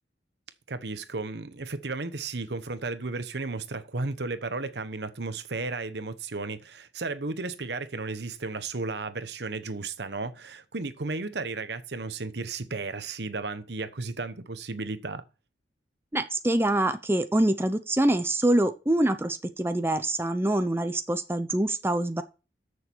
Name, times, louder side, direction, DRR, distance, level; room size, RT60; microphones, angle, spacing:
voice 1, 0.7-15.2, right 3 dB, 70° right, 1.0 m, -34 dB
voice 2, 16.1-22.2, right 1 dB, 15° right, 0.7 m, -25 dB
14.0 x 6.6 x 4.6 m
head